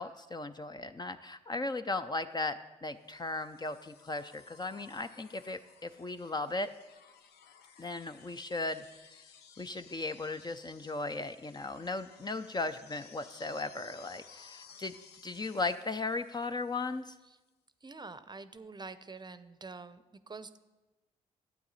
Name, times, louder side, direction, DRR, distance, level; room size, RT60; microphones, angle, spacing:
voice 1, 0.0-6.7 7.8-8.8 9.6-14.9 15.2-17.1, left 3 dB, 25° left, 9 dB, 0.6 m, -37 dB
sound 1, 3.1-17.1 18.6-18.7, left 7 dB, 70° left, 0.8 m, -58 dB
voice 2, 17.8-20.6, right 4 dB, 25° right, 13 dB, 0.7 m, -46 dB
13.0 x 8.3 x 4.2 m, 1.1 s
hypercardioid pair, 45°, 18 cm